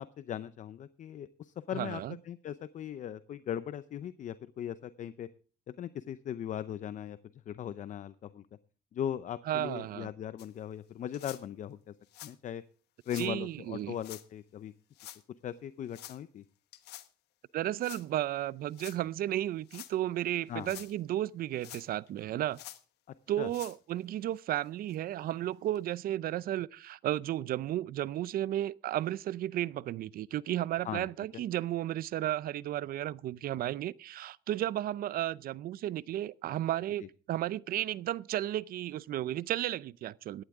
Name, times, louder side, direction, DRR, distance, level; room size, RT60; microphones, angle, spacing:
voice 1, 0.0-5.3 5.7-7.2 7.5-8.5 8.9-11.9 12.2-12.6 13.1-14.7 15.4-16.4 20.5-20.8 23.1-23.5 30.8-31.1 31.3-31.4 37.0-37.1, left 10 dB, 50° left, 0.6 m, -39 dB
voice 2, 1.7-2.2 9.5-10.1 13.1-13.9 17.5-22.6 23.3-40.4, right 13 dB, 60° right, 0.5 m, -33 dB
sound 1, 10.4-10.5 11.1-11.4 12.1-12.3 13.0-13.3 14.0-14.2 15.0-15.2 15.9-16.2 16.7-17.1 17.8-18.0 18.7-19.0 19.6-19.9 20.5-20.9 21.6-22.1 22.5-22.8 23.4-23.8 24.4-24.5 24.9-25.0 25.8-25.9, left 14 dB, 75° left, 1.1 m, -47 dB
17.5 x 11.5 x 3.6 m
cardioid pair, 110°, 17 cm